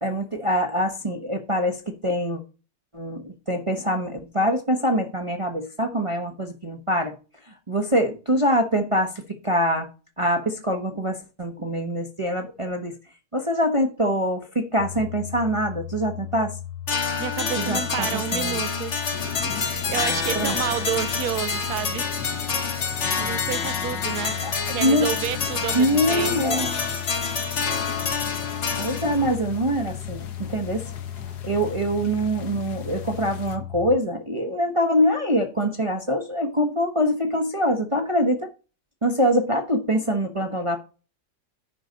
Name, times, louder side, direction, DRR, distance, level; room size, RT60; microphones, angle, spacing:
voice 1, 0.0-2.4 2.9-7.2 7.5-9.9 10.2-13.0 13.3-16.5 17.6-18.6 20.3-20.6 24.4-25.1 25.7-26.7 28.8-30.9 31.4-38.5 39.0-40.8, equal, 25° right, 0.8 m, -24 dB
sound 1, 14.8-34.0, left 11 dB, 90° left, 1.4 m, -36 dB
sound 2, 16.9-29.3, left 5 dB, 45° left, 1.3 m, -27 dB
voice 2, 17.2-22.0 23.1-24.4 24.7-26.6, right 12 dB, 70° right, 1.1 m, -30 dB
sound 3, 19.1-33.6, left 6 dB, 70° left, 1.6 m, -41 dB
10.0 x 5.6 x 5.2 m
omnidirectional pair, 1.8 m